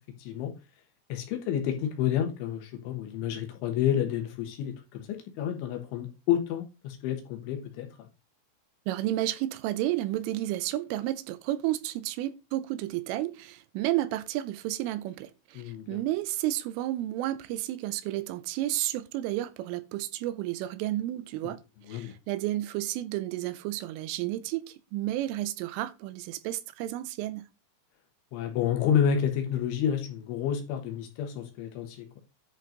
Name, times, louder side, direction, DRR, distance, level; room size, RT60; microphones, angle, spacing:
voice 1, 0.2-0.5 1.1-8.1 15.6-16.0 21.4-21.5 21.9-22.1 28.3-32.1, left 9 dB, 75° left, 3.6 m, -30 dB
voice 2, 8.9-21.6 21.9-27.5, right 15 dB, 85° right, 3.3 m, -31 dB
10.5 x 5.4 x 3.9 m
omnidirectional pair, 5.8 m